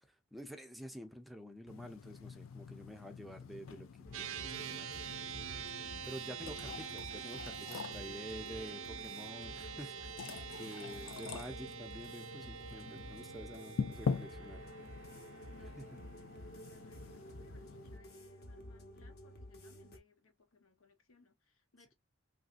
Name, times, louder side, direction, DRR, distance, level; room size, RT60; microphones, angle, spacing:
voice 1, 0.0-5.0 6.1-10.2 10.6-14.6 15.9-16.0, equal, ahead, 0.4 m, -49 dB
sound 1, 1.7-18.0, left 5 dB, 70° left, 0.4 m, -45 dB
sound 2, 4.0-20.0, equal, 50° left, 0.9 m, -51 dB
sound 3, 4.1-17.7, right 8 dB, 70° right, 0.4 m, -47 dB
voice 2, 15.5-21.9, left 3 dB, 85° left, 0.9 m, -67 dB
3.1 x 2.6 x 2.4 m
head